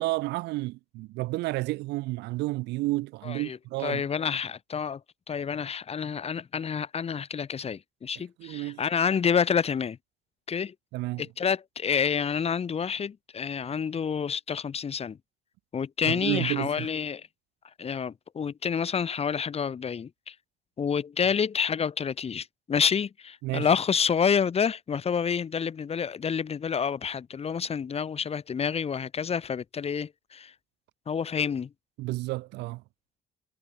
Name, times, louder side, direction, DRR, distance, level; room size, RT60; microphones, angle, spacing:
voice 1, 0.0-4.0 8.4-8.8 10.9-11.2 16.1-16.9 23.4-23.7 32.0-32.8, right 20 dB, 90° right, 3.2 m, -31 dB
voice 2, 3.2-5.0 5.3-10.0 10.5-10.7 11.2-15.2 15.7-17.3 17.8-20.3 20.8-30.5 31.1-31.7, left 6 dB, 35° left, 3.8 m, -28 dB
cardioid pair, 110°, 17 cm